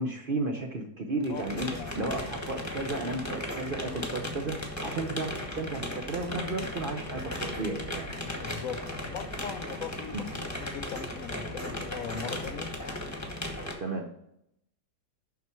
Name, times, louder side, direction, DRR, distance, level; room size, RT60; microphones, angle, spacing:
voice 1, 0.0-1.7 2.0-4.6 4.8-8.1 10.1-10.2 13.8-14.1, right 2 dB, 50° right, 4 dB, 0.7 m, -33 dB
sound 1, 1.2-13.7, left 1 dB, 10° left, 1.1 m, -36 dB
voice 2, 1.7-2.2 8.2-12.7, left 7 dB, 65° left, 10 dB, 0.9 m, -40 dB
7.3 x 5.8 x 4.4 m, 0.79 s
omnidirectional pair, 1.7 m